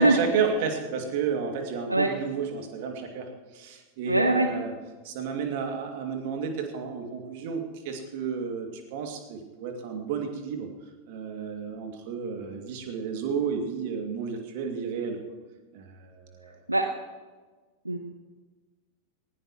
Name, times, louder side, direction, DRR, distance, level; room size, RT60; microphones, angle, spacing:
voice 1, 0.0-4.7 5.0-10.7 11.1-15.2 15.7-16.5, right 6 dB, 50° right, 4 dB, 2.4 m, -32 dB
voice 2, 4.1-4.5 16.7-16.9 17.8-18.0, right 2 dB, 85° right, 6 dB, 0.9 m, -21 dB
19.0 x 17.0 x 3.1 m, 1.3 s
figure-of-eight pair, 90°, 0 cm